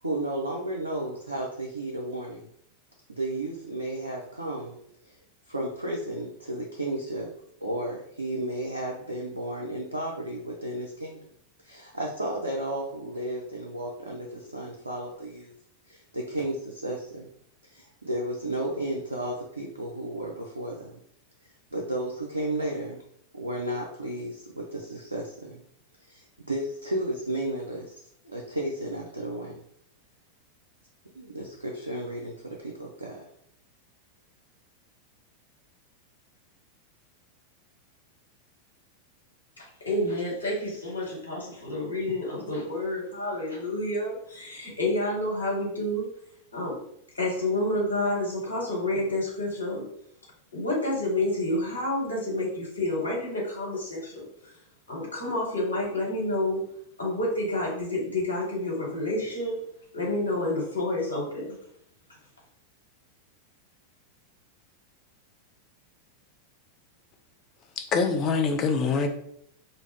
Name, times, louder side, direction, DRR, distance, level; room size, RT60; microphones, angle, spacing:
voice 1, 0.0-2.4 3.1-4.8 5.0-5.2 5.5-7.3 7.6-11.2 11.6-15.6 15.9-17.3 17.6-21.0 21.7-23.0 23.3-25.6 26.0-29.6 31.1-33.3, right 1 dB, 80° right, -1 dB, 0.4 m, -33 dB
voice 2, 39.6-46.1 46.5-46.8 47.1-49.9 50.5-54.6 54.9-56.6 57.0-59.6 59.9-61.6, left 1 dB, 80° left, -4 dB, 1.1 m, -29 dB
voice 3, 67.8-69.1, left 4 dB, 30° left, 5 dB, 0.4 m, -24 dB
2.4 x 2.0 x 3.2 m, 0.69 s
figure-of-eight pair, 90°, 0 cm